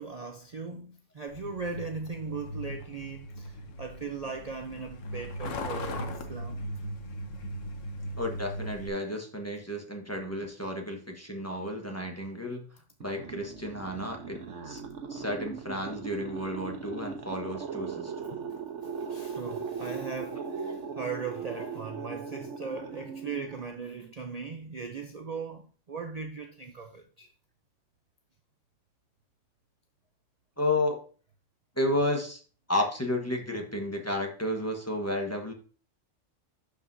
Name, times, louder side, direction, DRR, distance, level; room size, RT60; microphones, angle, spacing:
voice 1, 0.0-6.6 18.3-18.5 19.0-27.3, right 5 dB, 40° right, 0.7 m, -39 dB
Truck, 1.3-8.9, equal, 85° left, 1.3 m, -38 dB
voice 2, 8.2-12.6 13.0-14.4 14.6-14.8 15.1-18.1 21.6-21.7 22.6-22.7 30.6-31.0 31.8-32.4 32.7-35.5, left 1 dB, 15° left, 1.3 m, -32 dB
sound 1, 13.0-24.1, right 5 dB, 75° right, 1.4 m, -39 dB
12.0 x 5.0 x 2.7 m
omnidirectional pair, 1.3 m